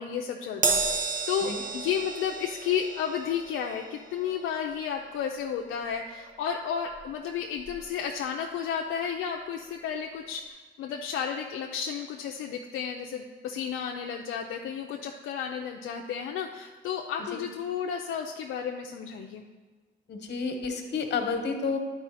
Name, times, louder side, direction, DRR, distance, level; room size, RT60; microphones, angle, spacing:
voice 1, 0.0-19.4, left 7 dB, 85° left, 2 dB, 0.5 m, -32 dB
Crash cymbal, 0.6-7.3 7.6-7.8 8.9-9.0, right 4 dB, 40° right, 1.0 m, -34 dB
voice 2, 20.1-21.8, left 5 dB, 60° left, 5 dB, 1.2 m, -30 dB
10.5 x 4.7 x 4.1 m, 1.4 s
cardioid pair, 90°, 20 cm